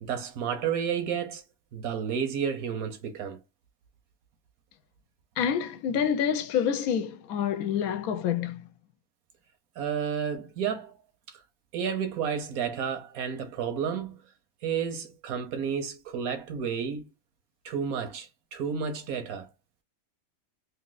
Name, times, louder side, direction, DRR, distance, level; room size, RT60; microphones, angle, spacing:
voice 1, 0.0-1.4 1.7-3.4 9.8-11.0 11.3-11.4 11.7-14.2 14.6-17.1 17.6-19.5, right 7 dB, 90° right, 1.3 m, -31 dB
voice 2, 5.4-8.6, left 8 dB, 85° left, 1.0 m, -27 dB
3.2 x 2.7 x 3.8 m
omnidirectional pair, 1.5 m